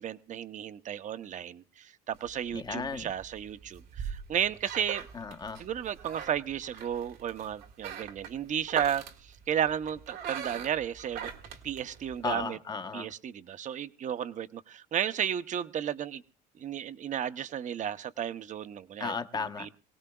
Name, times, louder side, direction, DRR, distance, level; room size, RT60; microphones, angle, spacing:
voice 1, 0.0-5.0 5.6-11.3 11.6-12.6 12.9-16.2 16.6-19.1 19.6-19.7, right 9 dB, 45° right, 12 dB, 0.7 m, -33 dB
sound 1, 2.2-12.4, right 8 dB, 80° right, 1.8 m, -42 dB
voice 2, 2.5-3.1 5.1-5.6 12.2-13.1 19.0-19.7, left 5 dB, 25° left, 8 dB, 1.0 m, -35 dB
24.5 x 17.5 x 2.3 m, 0.33 s
cardioid pair, 110°, 17 cm